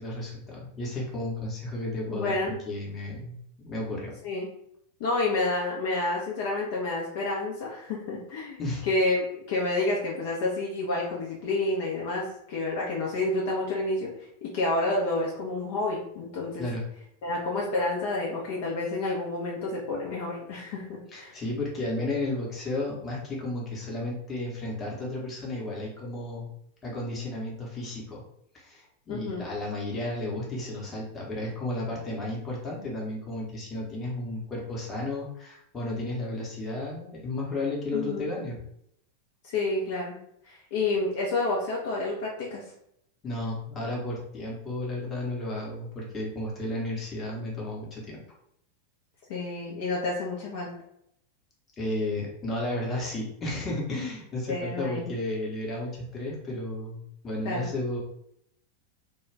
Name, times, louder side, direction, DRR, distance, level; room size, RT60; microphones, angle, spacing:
voice 1, 0.0-4.1 8.6-8.8 16.6-16.8 21.1-26.5 26.8-28.2 28.5-38.6 43.2-48.2 51.8-58.0, left 1 dB, 20° left, -3 dB, 0.9 m, -33 dB
voice 2, 2.1-2.6 4.2-4.5 5.0-14.1 14.4-16.7 17.2-21.4 29.1-29.5 37.9-38.3 39.4-40.2 40.5-42.6 49.3-50.7 54.5-55.1 57.4-57.7, left 2 dB, 50° left, -3 dB, 0.6 m, -29 dB
2.3 x 2.3 x 3.2 m, 0.74 s
figure-of-eight pair, 90°, 0 cm